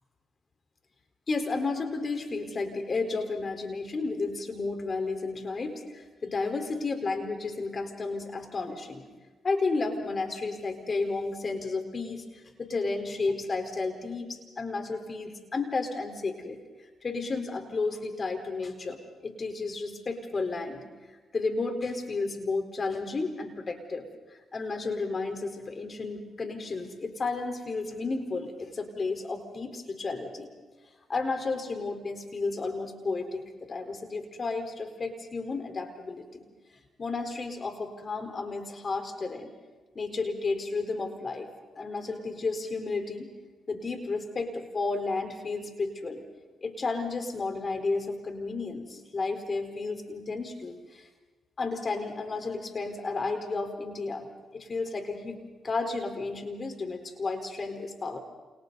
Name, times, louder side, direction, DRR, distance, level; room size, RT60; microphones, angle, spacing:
voice 1, 1.3-9.0 9.4-12.2 12.6-16.6 17.0-20.8 21.3-24.1 24.5-30.5 31.1-36.4 37.0-39.5 39.9-41.5 41.8-43.3 43.7-46.2 46.6-51.1 51.6-54.3 54.5-58.2, left 3 dB, 45° left, 5 dB, 4.3 m, -32 dB
29.0 x 29.0 x 4.1 m, 1.3 s
cardioid pair, 65°, 0 cm